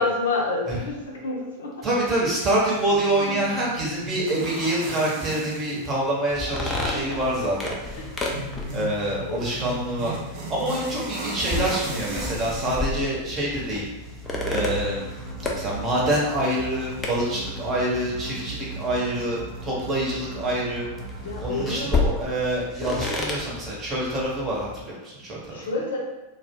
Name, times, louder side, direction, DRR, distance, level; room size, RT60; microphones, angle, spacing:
voice 1, 0.0-1.8 3.2-3.4 6.9-7.2 7.9-8.1 9.3-9.4 21.2-22.0 25.5-26.0, left 3 dB, 65° left, -2 dB, 0.6 m, -28 dB
voice 2, 1.8-8.0 8.7-10.2 10.5-13.9 14.4-15.0 15.5-20.9 21.4-25.7, right 1 dB, 25° right, -5 dB, 0.9 m, -26 dB
sound 1, 2.7-20.1, right 2 dB, 45° right, 0.5 m, -38 dB
sound 2, 6.3-24.8, left 3 dB, 15° left, 0.4 m, -33 dB
sound 3, 14.2-22.5, right 4 dB, 60° right, 0.9 m, -37 dB
2.2 x 2.1 x 3.4 m, 1.1 s
figure-of-eight pair, 90°, 0 cm